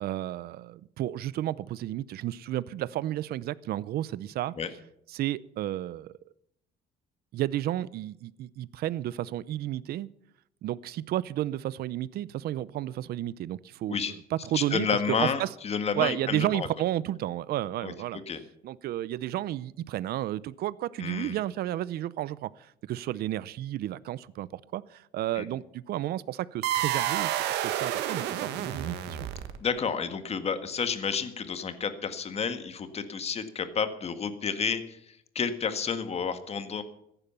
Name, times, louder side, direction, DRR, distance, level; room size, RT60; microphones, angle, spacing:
voice 1, 0.0-4.5 5.1-6.1 7.3-10.1 10.6-15.5 16.0-18.2 18.6-29.3, right 13 dB, 65° right, 0.7 m, -32 dB
voice 2, 14.5-16.7 17.8-17.9 18.3-18.4 21.0-21.4 25.4-25.5 29.6-35.0 35.4-36.8, left 6 dB, 40° left, 1.8 m, -30 dB
sound 1, 26.6-29.8, right 11 dB, 90° right, 1.6 m, -30 dB
14.5 x 11.0 x 7.1 m
cardioid pair, 110°, 17 cm